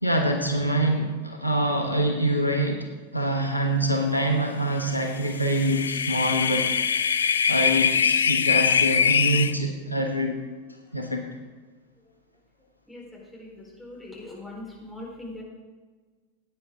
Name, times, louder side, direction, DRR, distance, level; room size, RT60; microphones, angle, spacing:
voice 1, 0.0-2.9 3.1-6.7 7.0-10.4 10.9-11.3, right 1 dB, 85° left, 3 dB, 1.2 m, -25 dB
sound 1, 5.2-9.5, left 7 dB, 70° left, 0.4 m, -23 dB
voice 2, 13.3-15.4, left 2 dB, 5° left, -5 dB, 4.4 m, -41 dB
16.0 x 9.4 x 3.7 m, 1.4 s
figure-of-eight pair, 90°, 0 cm